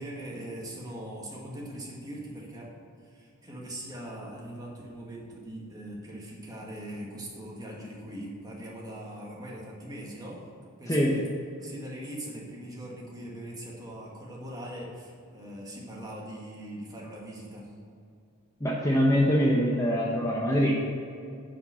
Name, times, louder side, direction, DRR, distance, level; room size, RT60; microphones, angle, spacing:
voice 1, 0.0-2.7 3.0-10.4 10.8-11.2 11.6-17.7, right 1 dB, 15° right, -3 dB, 1.9 m, -41 dB
voice 2, 10.9-11.2 18.6-20.8, equal, 15° left, -3 dB, 1.0 m, -24 dB
10.0 x 5.2 x 6.9 m, 2.4 s
head